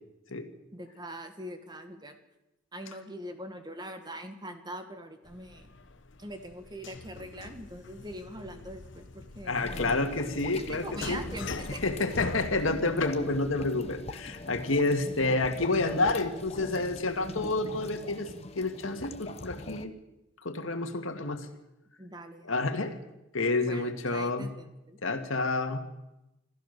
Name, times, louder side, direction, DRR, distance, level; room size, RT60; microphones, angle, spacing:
voice 1, 0.7-2.2 2.7-5.7 6.2-10.0 10.5-11.8 22.0-22.9 23.6-25.0, right 1 dB, 20° right, 7 dB, 1.8 m, -43 dB
sound 1, 5.2-17.4, left 3 dB, 65° left, 1.1 m, -44 dB
voice 2, 9.5-11.2 11.8-18.3 18.6-19.9 20.4-21.5 22.4-23.0 23.3-24.5 25.0-25.8, left 2 dB, 90° left, 7 dB, 2.1 m, -29 dB
sound 2, 9.5-19.9, left 2 dB, 30° left, 1.0 m, -42 dB
26.5 x 14.5 x 6.8 m, 0.93 s
head